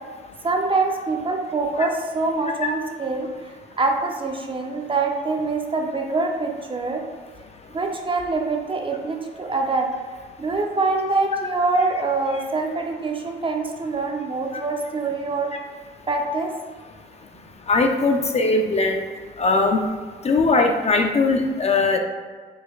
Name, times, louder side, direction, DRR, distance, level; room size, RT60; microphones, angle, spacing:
voice 1, 0.4-7.0 7.7-9.9 10.4-15.5 16.1-16.6, right 3 dB, 25° right, 2 dB, 0.6 m, -24 dB
voice 2, 17.7-19.1 19.4-19.8 20.2-22.0, left 3 dB, 35° left, 4 dB, 0.4 m, -20 dB
4.7 x 4.1 x 2.4 m, 1.5 s
cardioid pair, 90°, 20 cm